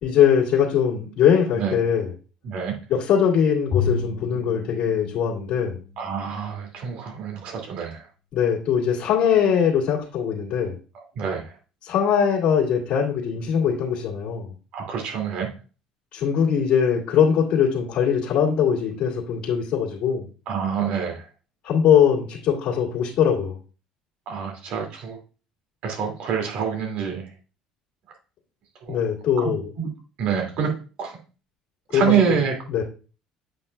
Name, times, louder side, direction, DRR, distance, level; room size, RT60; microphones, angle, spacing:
voice 1, 0.0-2.1 2.9-5.8 8.3-10.7 11.8-14.5 16.1-20.3 21.6-23.6 28.9-29.7 31.9-32.0 32.3-32.4 32.7-32.8, left 8 dB, 60° left, -6 dB, 2.2 m, -21 dB
voice 2, 2.4-2.8 6.0-8.1 10.9-11.5 14.7-15.5 20.5-21.2 24.3-25.2 25.8-27.3 28.8-29.0 29.4-29.9 30.2-30.7 31.0-31.2 31.9-32.5, right 7 dB, 65° right, 2 dB, 2.3 m, -26 dB
Bowed string instrument, 3.7-6.1, left 6 dB, 35° left, 1.0 m, -30 dB
8.2 x 5.7 x 2.3 m, 0.35 s
hypercardioid pair, 75°, 2 cm